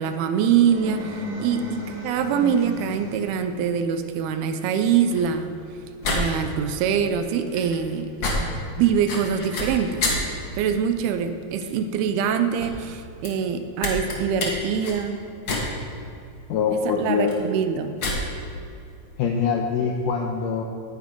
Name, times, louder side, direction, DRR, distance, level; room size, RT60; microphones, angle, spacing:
voice 1, 0.0-5.5 6.1-10.1 10.6-15.2 16.7-17.9, right 7 dB, 85° right, 9 dB, 2.5 m, -24 dB
sound 1, 0.6-3.5, equal, 40° right, 3.8 m, -34 dB
sound 2, 4.8-20.0, left 2 dB, 45° left, 1.5 m, -32 dB
voice 2, 16.5-17.3 19.2-20.6, left 6 dB, 80° left, 1 dB, 1.9 m, -23 dB
18.5 x 9.7 x 3.7 m, 2.7 s
omnidirectional pair, 4.6 m